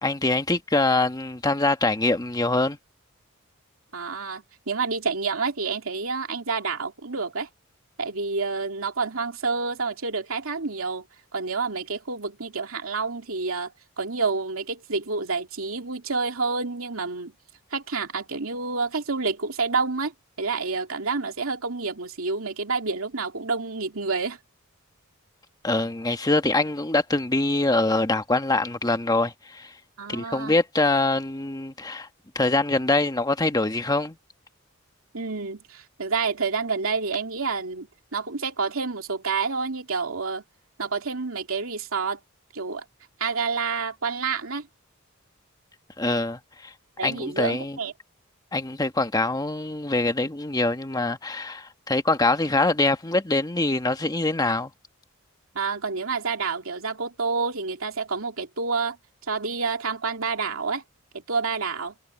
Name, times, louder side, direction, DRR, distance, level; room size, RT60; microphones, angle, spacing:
voice 1, 0.0-2.8 25.6-29.7 30.1-32.1 32.3-34.2 46.0-46.7 47.0-47.8 48.5-54.7, left 2 dB, 20° left, 1.3 m, -24 dB
voice 2, 3.9-7.5 8.0-11.0 11.3-13.7 14.0-17.3 17.7-24.4 30.0-30.6 35.1-40.4 40.8-42.2 42.5-42.8 43.2-44.7 47.0-47.9 55.5-59.0 59.3-60.8 61.1-61.9, right 4 dB, 90° right, 2.6 m, -28 dB
head